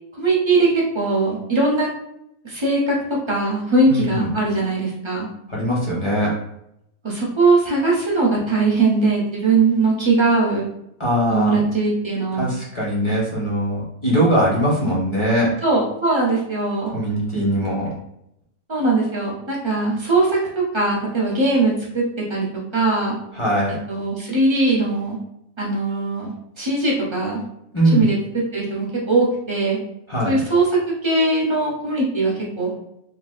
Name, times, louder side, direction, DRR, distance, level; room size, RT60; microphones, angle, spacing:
voice 1, 0.2-0.7 0.9-1.9 2.4-2.9 3.3-5.3 7.0-10.7 11.3-12.5 15.6-16.9 18.7-20.4 20.7-22.0 22.3-22.5 22.7-23.2 23.9-25.2 25.6-27.4 27.9-28.2 28.5-29.8 30.2-30.7 31.0-32.7, right 3 dB, 40° right, -4 dB, 0.4 m, -20 dB
voice 2, 3.9-4.3 5.5-6.3 11.0-11.6 12.3-15.5 16.9-17.9 23.3-23.7 27.7-28.1 30.1-30.4, equal, 25° left, -5 dB, 0.7 m, -21 dB
3.3 x 2.4 x 2.3 m, 0.78 s
omnidirectional pair, 1.6 m